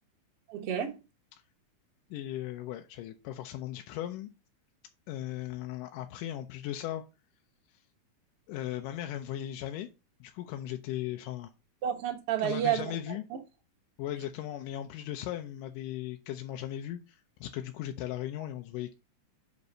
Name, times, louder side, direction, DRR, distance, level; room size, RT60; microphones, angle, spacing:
voice 1, 0.5-1.0 11.8-12.9 13.3-13.4, right 10 dB, 55° right, 1.9 m, -30 dB
voice 2, 2.1-4.3 5.1-7.0 8.5-9.9 10.2-11.5 12.4-13.2 14.0-18.9, left 12 dB, 90° left, 2.3 m, -37 dB
5.4 x 5.3 x 6.2 m
omnidirectional pair, 3.7 m